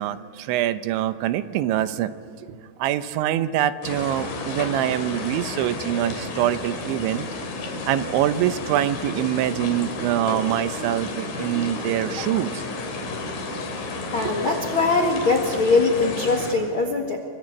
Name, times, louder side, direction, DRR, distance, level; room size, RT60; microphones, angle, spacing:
voice 1, 0.0-2.1 2.4-7.3 7.9-12.6 14.2-14.3, right 12 dB, 80° right, 11 dB, 3.2 m, -24 dB
sound 1, 3.8-16.5, left 3 dB, 70° left, 5.8 m, -32 dB
voice 2, 14.1-17.2, left 3 dB, 50° left, 5 dB, 1.5 m, -21 dB
27.0 x 25.0 x 8.8 m, 2.3 s
omnidirectional pair, 5.4 m